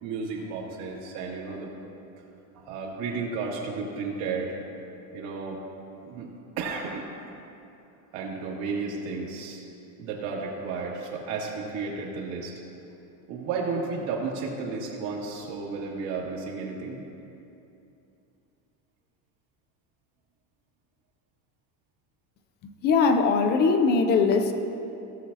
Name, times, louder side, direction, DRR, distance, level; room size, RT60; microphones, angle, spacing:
voice 1, 0.0-1.7 2.5-4.6 5.1-5.6 6.0-6.3 6.6-7.0 8.1-9.6 10.0-12.5 13.3-17.0, right 4 dB, 70° right, -3 dB, 2.3 m, -33 dB
voice 2, 22.8-24.5, left 4 dB, 25° left, 7 dB, 0.4 m, -21 dB
17.5 x 7.2 x 2.7 m, 2.8 s
cardioid pair, 165°, 42 cm